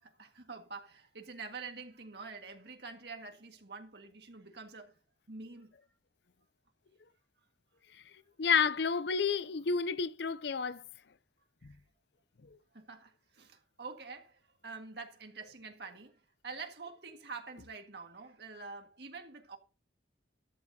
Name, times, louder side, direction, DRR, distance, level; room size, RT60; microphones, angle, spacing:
voice 1, 0.0-4.9 5.3-5.8 11.6-11.8 12.7-16.2 16.4-19.6, right 4 dB, 60° right, 1.8 m, -46 dB
voice 2, 8.4-10.8, left 6 dB, 65° left, 0.5 m, -30 dB
13.5 x 12.0 x 2.8 m
head